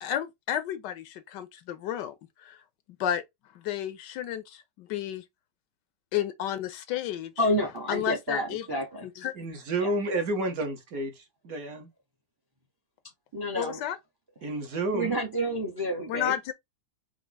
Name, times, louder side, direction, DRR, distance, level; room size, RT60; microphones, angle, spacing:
voice 1, 0.0-2.6 3.0-3.2 3.5-5.2 6.1-7.3 7.9-8.7 9.2-9.3 13.6-14.0 16.1-16.5, left 11 dB, 75° left, 1.2 m, -32 dB
voice 2, 7.4-9.1 9.8-9.9 13.3-13.8 14.9-16.3, equal, 30° right, 0.4 m, -29 dB
voice 3, 9.3-11.9 14.4-15.2, right 2 dB, 55° right, 1.2 m, -30 dB
4.6 x 2.0 x 3.9 m
omnidirectional pair, 2.0 m